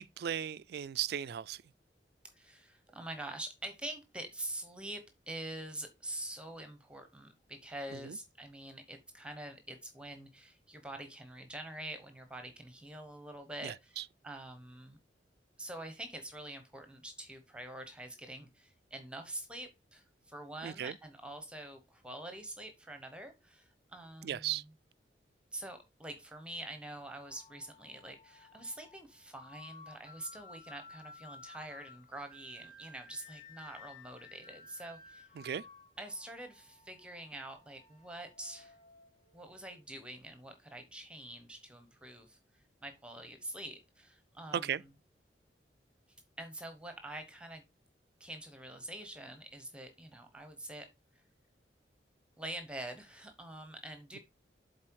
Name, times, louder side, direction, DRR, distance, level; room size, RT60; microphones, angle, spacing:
voice 1, 0.0-1.6 7.9-8.2 13.6-14.0 20.6-21.0 24.2-24.6 35.4-35.6 44.5-44.8, right 9 dB, 60° right, 0.3 m, -36 dB
voice 2, 2.3-14.0 14.2-15.0 15.6-24.6 25.5-35.4 36.0-38.8 39.3-44.9 46.4-47.6 48.2-50.9 51.1-51.2 52.4-54.2, right 1 dB, 5° right, 1.0 m, -45 dB
sound 1, 27.0-39.8, left 3 dB, 50° left, 1.9 m, -56 dB
7.5 x 4.2 x 4.6 m
head